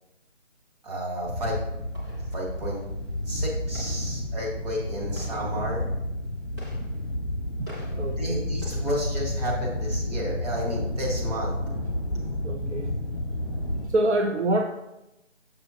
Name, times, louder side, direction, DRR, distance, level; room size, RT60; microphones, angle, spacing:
voice 1, 0.8-1.6 2.3-2.8 3.3-5.9 8.0-11.5, equal, 30° right, -3 dB, 1.8 m, -32 dB
sound 1, 1.2-13.8, left 1 dB, 15° right, 1.1 m, -31 dB
voice 2, 8.0-8.5 12.4-12.9 13.8-14.6, right 1 dB, 65° right, 4 dB, 0.6 m, -26 dB
6.8 x 6.7 x 2.9 m, 0.91 s
figure-of-eight pair, 170°, 38 cm